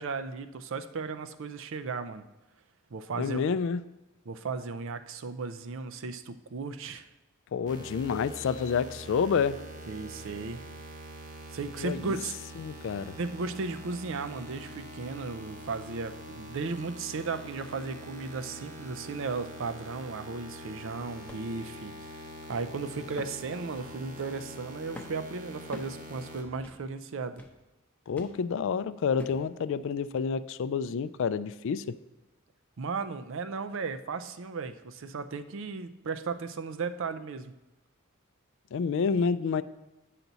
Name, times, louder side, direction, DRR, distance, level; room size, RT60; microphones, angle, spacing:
voice 1, 0.0-2.2 2.9-3.5 4.3-7.1 9.9-10.6 11.5-12.3 13.2-27.4 32.8-37.5, right 4 dB, 60° right, 0.5 m, -35 dB
voice 2, 3.2-3.8 7.5-9.6 11.8-12.1 12.6-13.2 28.1-32.0 38.7-39.6, left 6 dB, 60° left, 0.3 m, -29 dB
sound 1, 7.7-26.4, equal, 35° right, 1.1 m, -45 dB
sound 2, 21.3-21.5 22.0-22.1 23.2-23.4 23.7-24.0 24.9-25.2 25.7-26.0 26.6-26.9 27.4-27.6 28.2-28.4 29.2-29.5 30.2-30.3, left 1 dB, 10° left, 0.7 m, -45 dB
9.2 x 5.8 x 4.0 m
head